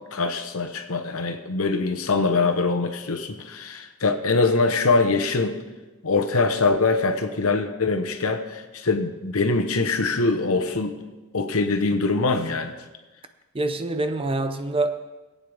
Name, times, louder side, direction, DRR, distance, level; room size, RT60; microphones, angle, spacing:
voice 1, 0.1-5.6 6.0-10.9 11.3-12.8, left 3 dB, 75° left, 6 dB, 1.0 m, -23 dB
voice 2, 13.5-15.0, right 2 dB, 25° right, 8 dB, 0.6 m, -25 dB
18.5 x 8.7 x 3.5 m, 1.2 s
head